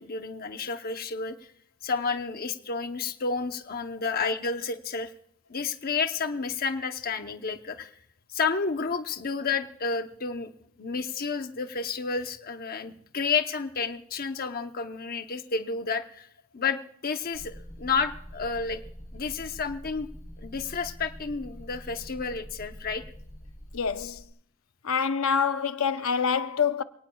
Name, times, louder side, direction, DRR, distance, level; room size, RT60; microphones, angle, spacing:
voice 1, 0.0-1.4 1.8-5.1 5.5-7.9 8.3-10.5 10.8-16.3 16.5-18.8 19.1-20.1 20.4-23.0, left 5 dB, 45° left, 0.9 m, -31 dB
sound 1, 17.3-24.3, equal, 15° left, 3.3 m, -45 dB
voice 2, 23.7-24.2 24.8-26.8, left 6 dB, 85° left, 0.8 m, -26 dB
27.0 x 18.0 x 2.3 m
head